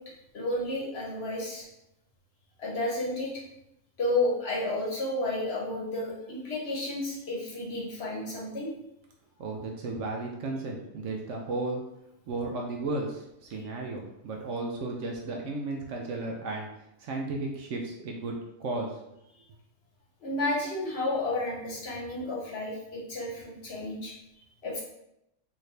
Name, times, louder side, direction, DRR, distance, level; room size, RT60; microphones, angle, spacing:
voice 1, 0.3-1.6 2.6-3.4 4.0-8.7 20.2-24.1 24.6-24.8, left 2 dB, 50° left, -4 dB, 1.1 m, -31 dB
voice 2, 9.4-11.8 12.3-16.7 17.0-18.3 18.6-18.9, right 2 dB, 70° right, 1 dB, 0.8 m, -34 dB
3.7 x 2.5 x 3.2 m, 0.83 s
omnidirectional pair, 1.5 m